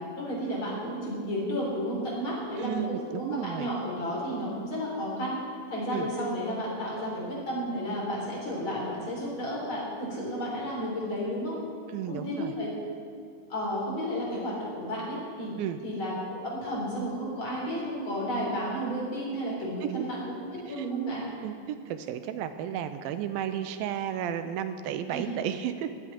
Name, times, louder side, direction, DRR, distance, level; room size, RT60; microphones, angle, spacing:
voice 1, 0.1-2.7 3.1-5.4 5.7-11.6 12.1-12.7 13.5-15.6 15.8-21.2 25.1-25.2, equal, 35° left, -5 dB, 4.4 m, -32 dB
voice 2, 2.6-3.7 5.9-6.1 11.9-12.5 15.6-15.8 19.8-20.1 20.7-20.9 21.4-25.9, right 10 dB, 85° right, 9 dB, 2.4 m, -33 dB
12.5 x 9.1 x 10.0 m, 2.3 s
omnidirectional pair, 4.2 m